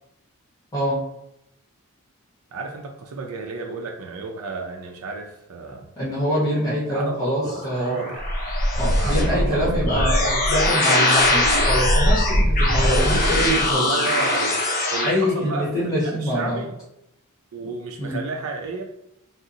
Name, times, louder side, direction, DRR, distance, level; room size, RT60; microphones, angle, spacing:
voice 1, 2.5-5.9 6.9-8.2 9.0-10.5 13.1-14.6 14.9-15.9 16.2-16.7 17.5-18.8, right 4 dB, 80° right, 1 dB, 0.4 m, -31 dB
voice 2, 6.0-8.0 8.8-10.2 10.5-13.8 15.0-16.6 18.0-18.2, equal, 15° left, -7 dB, 0.9 m, -24 dB
sound 1, 7.4-15.1, left 1 dB, 40° left, 0.5 m, -21 dB
2.7 x 2.0 x 3.7 m, 0.82 s
head